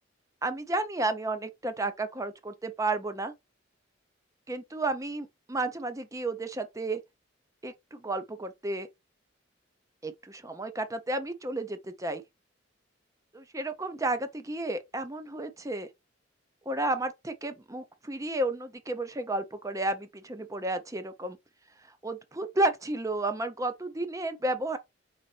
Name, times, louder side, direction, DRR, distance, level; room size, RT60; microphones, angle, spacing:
voice 1, 0.4-3.3 4.5-7.0 7.6-8.9 10.0-12.2 13.3-15.9 16.7-21.4 22.0-24.8, right 2 dB, 15° right, 0.6 m, -32 dB
4.1 x 3.9 x 3.2 m
head